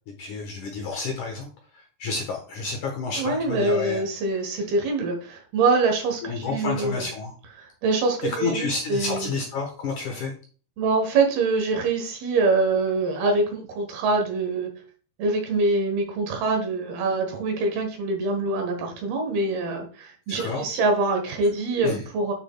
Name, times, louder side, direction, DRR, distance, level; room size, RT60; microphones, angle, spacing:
voice 1, 0.2-1.5 2.0-4.0 6.2-7.3 8.2-10.3 20.3-20.6 21.8-22.0, left 4 dB, 65° left, 0 dB, 2.2 m, -30 dB
voice 2, 3.2-7.0 7.6-9.3 10.8-14.7 15.2-22.3, right 3 dB, 70° right, 4 dB, 3.0 m, -24 dB
8.3 x 6.2 x 2.3 m, 0.39 s
omnidirectional pair, 4.9 m